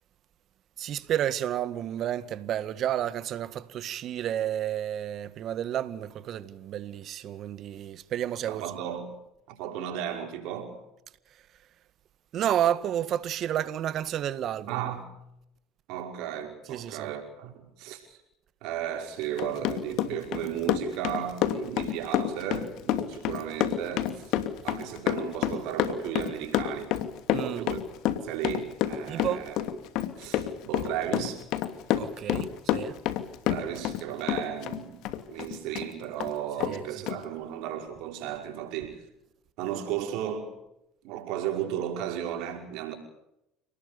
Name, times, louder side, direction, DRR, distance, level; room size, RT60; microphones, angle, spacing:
voice 1, 0.8-8.6 12.3-14.8 16.7-17.1 27.3-27.7 29.1-29.5 32.0-33.0 36.7-36.8, right 11 dB, 55° right, 1.9 m, -31 dB
voice 2, 8.5-9.2 9.5-10.8 14.7-15.2 15.9-18.2 18.6-24.4 24.6-26.9 27.3-27.8 28.2-29.6 30.2-31.4 33.5-39.0 39.6-40.5 41.0-42.9, right 10 dB, 70° right, 5.5 m, -35 dB
Run, 19.2-34.0 34.3-35.9 36.2-36.3 36.6-36.8 37.1-37.2, left 12 dB, 65° left, 2.6 m, -28 dB
29.5 x 20.0 x 7.0 m
hypercardioid pair, 80°, 0 cm